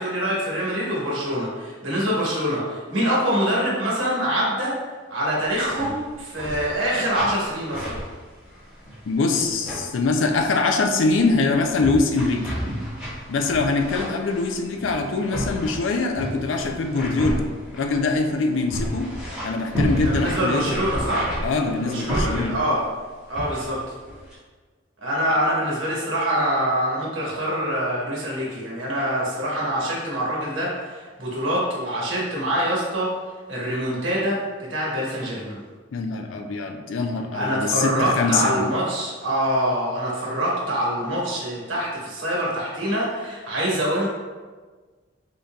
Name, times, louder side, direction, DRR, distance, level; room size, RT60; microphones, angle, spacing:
voice 1, 0.0-4.7 5.1-8.0 20.0-21.3 21.8-22.8 23.3-23.8 25.0-33.1 33.5-34.4 34.7-35.6 37.3-44.1, equal, 85° right, -4 dB, 1.2 m, -25 dB
sound 1, 5.5-5.9 6.2-6.8 7.1-7.5 7.7-9.1 9.4-9.8 10.3-10.6 11.2-22.8 23.3-23.8 24.1-24.3, equal, 5° right, 1.4 m, -31 dB
voice 2, 9.1-12.5 13.3-17.4 17.7-19.1 19.4-20.6 21.4-22.6 35.9-38.7, left 3 dB, 80° left, 5 dB, 0.4 m, -23 dB
3.9 x 3.8 x 2.2 m, 1.4 s
head